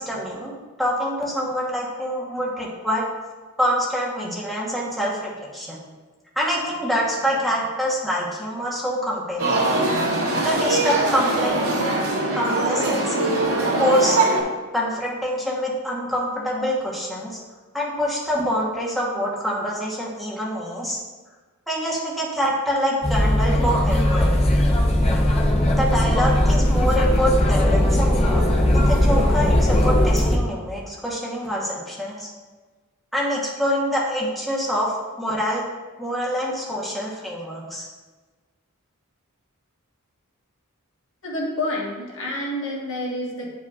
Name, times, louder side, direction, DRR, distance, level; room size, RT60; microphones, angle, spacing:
voice 1, 0.0-3.0 3.6-5.8 6.4-9.7 10.4-11.6 12.4-13.4 13.8-14.2 14.7-17.4 17.7-21.0 21.7-24.4 25.7-28.4 28.7-32.3 33.1-35.6 36.0-37.9, equal, ahead, -5 dB, 1.1 m, -25 dB
sound 1, 9.4-14.4, right 2 dB, 80° right, 1.6 m, -22 dB
sound 2, 23.0-30.4, left 1 dB, 30° left, 0.7 m, -18 dB
voice 2, 41.2-43.5, left 1 dB, 60° left, -3 dB, 1.4 m, -28 dB
9.2 x 4.8 x 2.4 m, 1.3 s
head